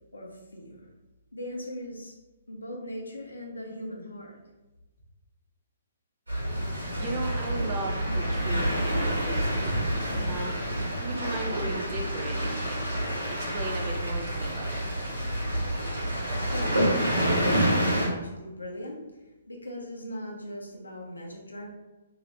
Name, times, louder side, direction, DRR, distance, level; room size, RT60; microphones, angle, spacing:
voice 1, 0.1-0.9 1.3-2.2 2.5-4.4 16.5-16.8 17.3-21.7, left 1 dB, 75° left, 0 dB, 0.8 m, -39 dB
sound 1, 6.3-18.1, right 1 dB, 75° right, 1.4 m, -28 dB
voice 2, 7.0-9.7 10.3-10.5 11.0-12.8 13.3-14.9, right 2 dB, 30° right, 0 dB, 0.7 m, -37 dB
2.9 x 2.8 x 3.2 m, 1.1 s
figure-of-eight pair, 125°, 0 cm